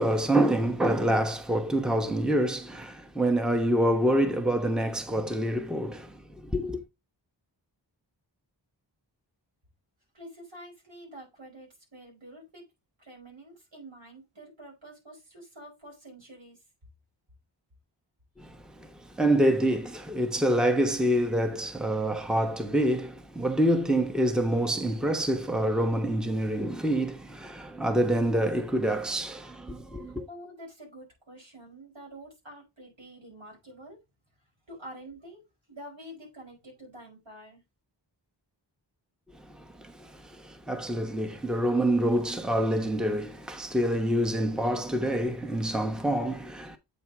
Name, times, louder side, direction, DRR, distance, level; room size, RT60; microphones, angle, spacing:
voice 1, 0.0-6.8 18.4-30.3 39.5-46.8, right 1 dB, ahead, 0.9 m, -27 dB
voice 2, 10.1-12.6 13.0-16.6 30.0-34.0 34.7-37.6, right 1 dB, 90° right, 5.2 m, -47 dB
8.3 x 4.6 x 3.5 m
wide cardioid pair, 75°, 45 cm